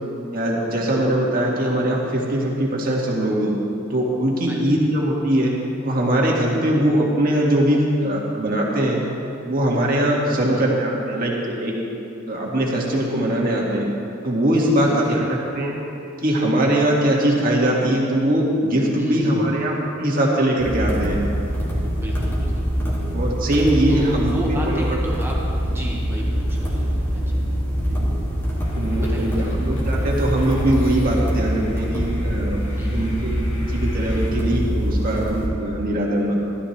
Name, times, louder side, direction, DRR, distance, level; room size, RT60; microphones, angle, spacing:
voice 1, 0.3-3.5 3.9-5.5 5.8-9.0 9.4-11.7 12.3-13.9 14.2-15.8 16.2-21.2 23.1-24.8 27.9-28.0 28.8-32.6 32.9-36.3, right 1 dB, 45° right, -3 dB, 2.0 m, -21 dB
voice 2, 4.5-4.8 10.4-10.7 14.8-15.2 19.0-19.5 21.9-22.7 23.9-27.4 29.0-29.5 32.8-33.1, equal, 10° right, -3 dB, 1.6 m, -32 dB
sound 1, 20.6-35.5, equal, 10° left, 2.2 m, -24 dB
sound 2, 28.6-34.3, left 1 dB, 85° left, 2.3 m, -41 dB
15.0 x 12.5 x 3.3 m, 2.7 s
head